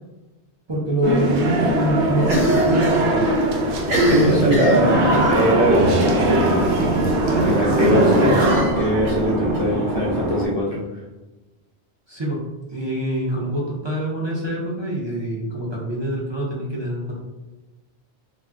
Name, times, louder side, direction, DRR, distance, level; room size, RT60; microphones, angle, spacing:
voice 1, 0.7-3.4 4.2-5.4 7.3-8.9 9.4-9.6 12.1-12.4 12.7-17.1, right 1 dB, 35° right, -5 dB, 0.4 m, -25 dB
sound 1, 1.0-8.6, right 1 dB, 80° right, 0.9 m, -20 dB
Cough, 2.2-3.0 3.3-3.4 3.8-5.3 6.0-6.3 6.6-6.7 7.0-7.1 8.4-9.6, equal, 65° right, 1.2 m, -23 dB
voice 2, 4.0-5.0 5.3-5.9 7.4-8.4 8.7-10.8, equal, 60° left, -4 dB, 0.4 m, -21 dB
sound 2, 4.9-10.5, right 1 dB, 10° right, 1.1 m, -26 dB
2.5 x 2.1 x 3.4 m, 1.1 s
omnidirectional pair, 1.1 m